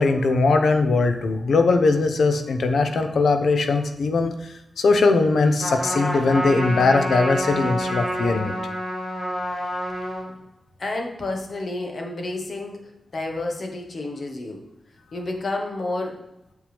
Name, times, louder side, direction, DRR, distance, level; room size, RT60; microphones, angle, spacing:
voice 1, 0.0-8.5, left 3 dB, 85° left, 7 dB, 0.8 m, -20 dB
Trumpet, 5.6-10.3, equal, 20° left, 2.0 m, -27 dB
voice 2, 10.8-14.6 15.1-16.2, left 2 dB, 55° left, 2 dB, 1.4 m, -30 dB
8.0 x 7.2 x 3.5 m, 0.90 s
wide cardioid pair, 140°, 0 cm